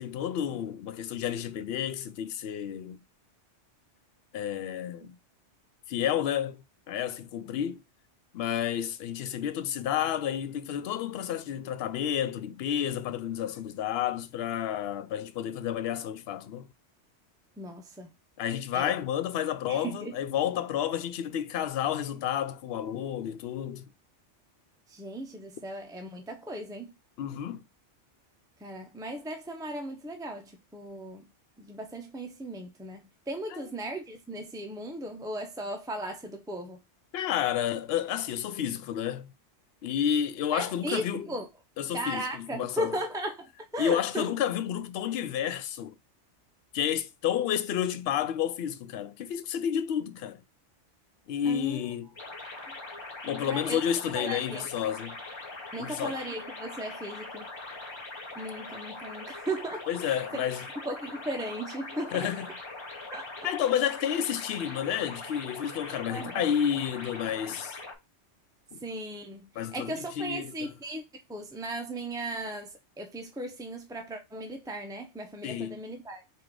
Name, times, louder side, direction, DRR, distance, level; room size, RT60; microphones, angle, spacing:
voice 1, 0.0-3.0 4.3-5.1 5.9-7.8 8.3-16.7 18.4-23.8 27.2-27.6 33.5-33.6 37.1-39.3 39.8-41.3 41.8-42.9 43.8-45.9 46.7-50.4 51.3-52.1 53.2-55.2 55.8-56.2 59.9-60.7 62.1-62.5 63.4-67.8 68.7-68.8 69.6-70.7 75.4-75.8, left 9 dB, 65° left, 0.8 m, -30 dB
voice 2, 17.6-18.1 18.7-18.9 19.7-20.1 24.9-26.9 28.6-31.3 31.6-36.8 40.5-41.5 41.9-44.3 51.4-51.8 53.5-53.8 54.1-54.7 55.7-57.5 58.4-60.4 60.8-62.3 63.1-63.5 66.1-66.5 68.8-71.0 71.3-76.2, right 1 dB, 5° right, 0.3 m, -37 dB
sound 1, 52.2-68.0, left 2 dB, 25° left, 0.8 m, -42 dB
3.7 x 3.0 x 4.6 m
omnidirectional pair, 1.2 m